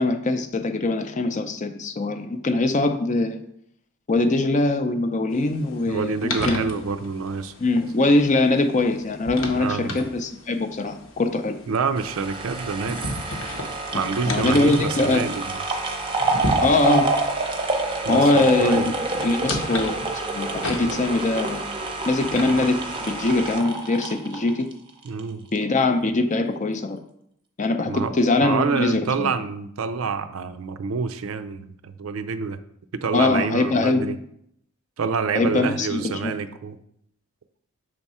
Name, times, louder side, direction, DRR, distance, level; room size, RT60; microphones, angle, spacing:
voice 1, 0.0-3.4 4.1-6.6 7.6-11.6 13.9-15.3 16.6-17.1 18.1-18.9 19.2-20.0 20.3-21.6 22.0-24.7 25.5-27.0 27.6-29.3 33.1-34.2 35.3-36.3, left 2 dB, 35° left, 0.5 m, -22 dB
sound 1, 5.3-23.6, left 1 dB, 65° left, 0.9 m, -35 dB
voice 2, 5.9-7.5 9.6-10.0 11.7-13.0 13.9-15.6 18.0-18.9 25.0-25.5 27.9-28.1 28.4-32.6 32.9-34.2 35.0-36.8, right 5 dB, 75° right, 0.4 m, -27 dB
sound 2, 12.0-25.2 25.6-25.7, right 2 dB, 25° right, 0.7 m, -27 dB
6.3 x 3.6 x 4.2 m
head